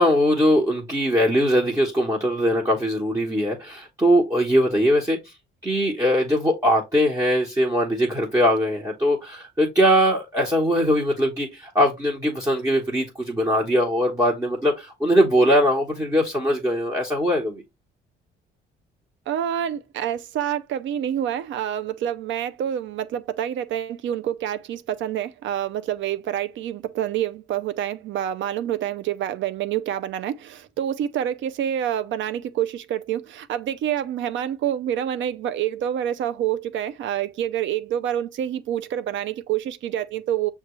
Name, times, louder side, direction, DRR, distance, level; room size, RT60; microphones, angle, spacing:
voice 1, 0.0-5.2 5.6-17.6, equal, 15° right, 1.0 m, -21 dB
voice 2, 19.3-40.5, right 10 dB, 70° right, 0.4 m, -27 dB
5.9 x 2.3 x 2.9 m
cardioid pair, 90°, 20 cm